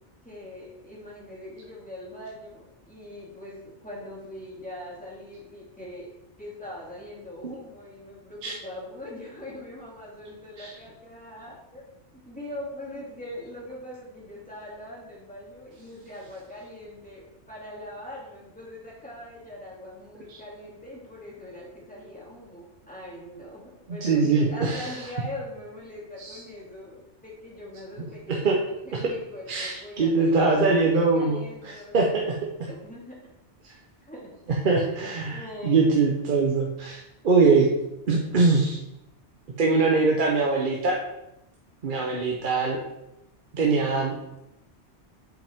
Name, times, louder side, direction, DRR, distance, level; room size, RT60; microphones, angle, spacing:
voice 1, 0.2-6.1 6.4-11.8 12.2-23.6 23.9-32.2 32.7-33.2 34.0-34.6 35.3-36.0 37.5-37.7, left 1 dB, 5° left, -6 dB, 2.4 m, -41 dB
voice 2, 23.9-24.9 26.2-26.4 28.3-28.6 28.9-29.0 29.5-32.4 33.6-33.7 34.6-37.7 38.1-38.8 39.6-41.0 41.8-42.8 43.5-44.1, right 4 dB, 50° right, -1 dB, 0.9 m, -23 dB
7.7 x 5.2 x 3.5 m, 0.89 s
omnidirectional pair, 1.2 m